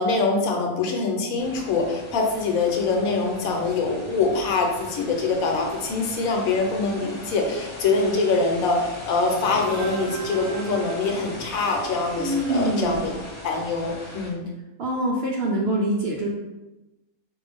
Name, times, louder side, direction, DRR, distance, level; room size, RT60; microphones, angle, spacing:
voice 1, 0.0-13.1 13.4-14.4, left 3 dB, 75° left, 2 dB, 1.2 m, -24 dB
sound 1, 1.4-14.3, left 1 dB, 30° left, 1.0 m, -40 dB
sound 2, 9.2-11.9, right 5 dB, 90° right, 1.1 m, -35 dB
voice 2, 12.2-13.0 14.8-16.3, right 1 dB, 60° right, -1 dB, 0.7 m, -24 dB
4.7 x 2.6 x 3.4 m, 1.0 s
omnidirectional pair, 1.5 m